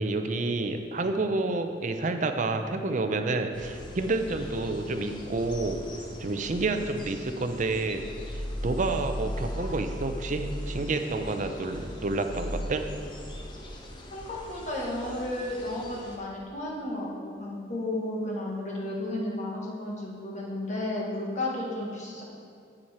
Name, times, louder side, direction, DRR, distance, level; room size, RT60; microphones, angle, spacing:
voice 1, 0.0-5.8 6.2-8.0 8.6-12.9, right 3 dB, 40° right, 6 dB, 0.5 m, -29 dB
sound 1, 3.5-16.2, equal, 25° left, 0.8 m, -39 dB
voice 2, 14.1-22.2, left 1 dB, 40° left, -3 dB, 1.5 m, -33 dB
7.8 x 7.3 x 4.3 m, 2.3 s
head